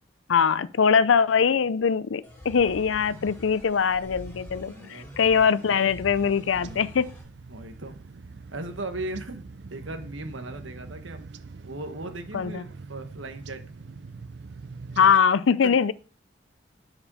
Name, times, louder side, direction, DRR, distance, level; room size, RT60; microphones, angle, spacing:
voice 1, 0.3-7.1 12.3-12.6 15.0-15.9, left 6 dB, 85° left, 0.5 m, -22 dB
sound 1, 2.2-7.2, left 1 dB, 15° left, 2.9 m, -44 dB
voice 2, 4.7-5.2 6.6-6.8 7.5-8.0 8.5-11.2 11.6-13.6 15.6-15.7, right 2 dB, 85° right, 1.3 m, -37 dB
sound 2, 6.2-15.2, right 4 dB, 60° right, 0.5 m, -43 dB
9.9 x 5.2 x 5.5 m
head